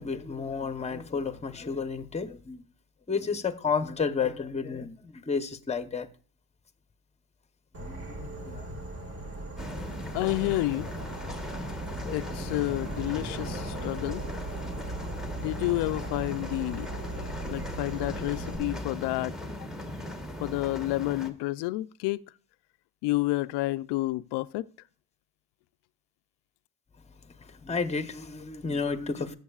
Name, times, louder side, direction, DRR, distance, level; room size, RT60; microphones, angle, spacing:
voice 1, 0.0-2.6 3.1-6.1 7.8-8.7 27.4-29.3, left 5 dB, 15° left, 0.9 m, -31 dB
Insect / Frog, 7.7-18.6, right 1 dB, 35° right, 2.0 m, -38 dB
sound 1, 9.6-21.3, left 1 dB, ahead, 1.1 m, -39 dB
voice 2, 10.1-10.9 12.1-14.2 15.4-16.9 17.1-19.3 20.4-22.2 23.0-24.7, left 19 dB, 90° left, 0.5 m, -30 dB
13.5 x 8.1 x 2.4 m
cardioid pair, 125°, 39 cm